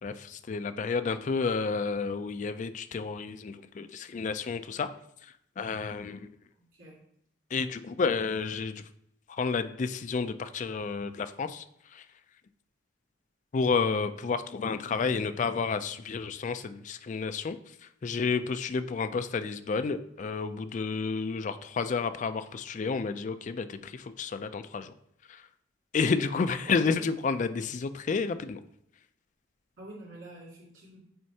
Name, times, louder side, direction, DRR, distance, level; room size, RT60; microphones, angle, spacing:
voice 1, 0.0-4.9 5.6-6.3 7.5-8.8 9.3-11.6 11.9-12.0 13.5-17.6 18.0-24.9 25.3-25.4 25.9-28.6, left 4 dB, 40° left, 11 dB, 0.3 m, -30 dB
voice 2, 6.6-7.0 26.6-27.1 29.8-31.0, right 1 dB, 80° right, -4 dB, 2.3 m, -46 dB
7.7 x 4.3 x 2.8 m, 0.73 s
head